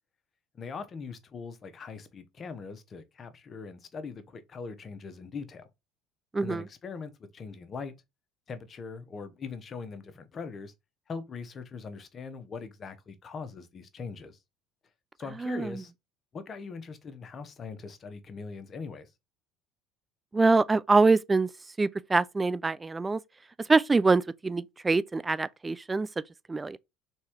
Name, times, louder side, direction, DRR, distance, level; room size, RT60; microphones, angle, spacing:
voice 1, 0.5-5.7 6.4-7.9 8.5-10.7 11.1-14.4 15.2-15.9 16.3-19.1, left 5 dB, 40° left, 0.9 m, -41 dB
voice 2, 6.3-6.6 15.4-15.8 20.3-21.5 21.8-23.2 23.7-26.1 26.5-26.8, right 3 dB, 20° right, 0.3 m, -24 dB
3.5 x 3.1 x 4.4 m
hypercardioid pair, 80°, 0 cm